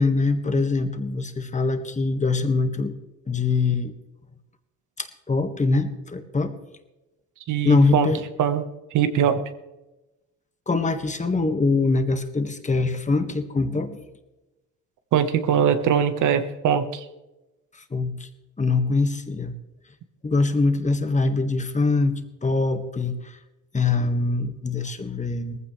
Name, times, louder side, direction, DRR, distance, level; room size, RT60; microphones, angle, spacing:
voice 1, 0.0-2.9 3.3-3.9 5.0-6.5 7.6-8.2 10.7-14.0 17.9-18.3 18.6-19.6 20.2-23.3 23.7-25.6, left 3 dB, 25° left, 7 dB, 1.7 m, -23 dB
voice 2, 7.5-8.1 8.4-9.4 15.1-17.0, right 8 dB, 80° right, 9 dB, 1.3 m, -22 dB
19.0 x 15.0 x 3.3 m, 1.0 s
cardioid pair, 90°, 30 cm